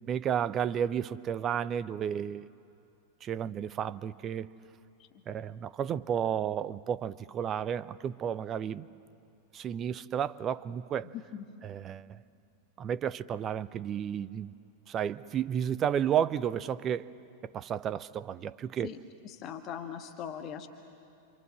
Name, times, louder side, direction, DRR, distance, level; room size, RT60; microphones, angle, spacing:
voice 1, 0.0-2.5 3.2-4.5 5.3-8.9 9.5-11.1 11.6-12.2 12.8-14.5 14.9-17.1 17.4-18.9, right 9 dB, 30° right, 18 dB, 0.6 m, -32 dB
voice 2, 11.1-11.4 18.8-19.0 19.2-20.7, left 9 dB, 35° left, 6 dB, 1.4 m, -40 dB
27.5 x 26.5 x 7.5 m, 2.7 s
figure-of-eight pair, 90°, 0 cm